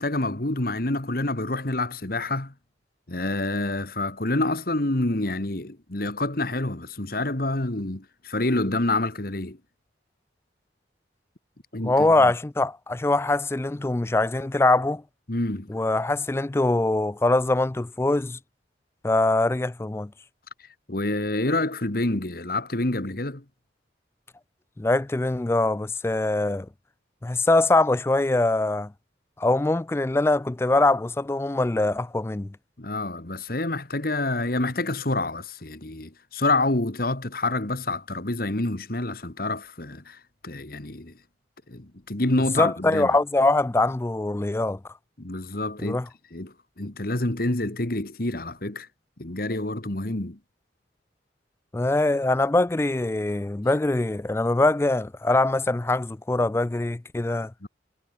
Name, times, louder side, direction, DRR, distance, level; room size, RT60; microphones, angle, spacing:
voice 1, 0.0-2.5 3.1-9.6 11.7-12.3 15.3-15.7 20.9-23.4 32.8-41.1 41.7-43.2 45.2-46.0 46.3-48.9 49.2-50.4 57.6-57.7, left 2 dB, 50° left, 1.8 m, -27 dB
voice 2, 11.8-15.0 15.7-18.4 19.0-20.1 24.8-26.7 27.2-28.9 29.4-32.6 42.6-44.8 45.8-46.1 51.7-57.5, left 2 dB, 15° left, 0.3 m, -23 dB
head